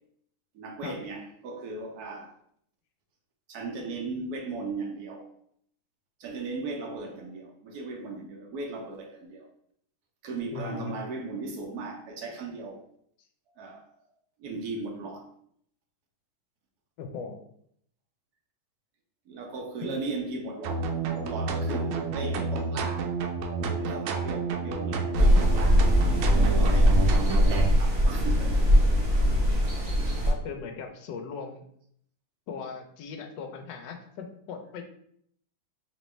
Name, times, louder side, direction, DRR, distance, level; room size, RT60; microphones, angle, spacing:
voice 1, 0.5-2.3 3.5-5.3 6.2-9.5 10.2-12.8 13.6-13.9 14.4-15.3 19.3-23.1 23.5-26.0 26.3-27.0 27.4-28.6, right 3 dB, 65° right, 2 dB, 1.0 m, -37 dB
voice 2, 10.5-10.9 17.0-17.4 19.8-20.0 30.3-31.6 32.5-34.8, left 5 dB, 70° left, 4 dB, 1.1 m, -38 dB
sound 1, 20.6-27.7, right 4 dB, 80° right, 1.4 m, -30 dB
sound 2, 25.2-30.3, equal, 45° right, 1.4 m, -21 dB
4.3 x 3.0 x 3.1 m, 0.68 s
omnidirectional pair, 2.3 m